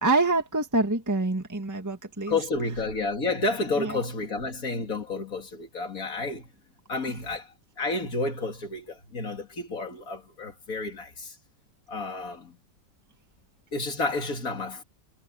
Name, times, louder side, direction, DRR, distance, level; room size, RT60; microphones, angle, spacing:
voice 1, 0.0-2.3, right 2 dB, 10° right, 1.6 m, -25 dB
voice 2, 2.3-6.5 6.9-11.4 11.9-12.6 13.7-14.8, left 3 dB, 50° left, 3.2 m, -31 dB
omnidirectional pair, 1.9 m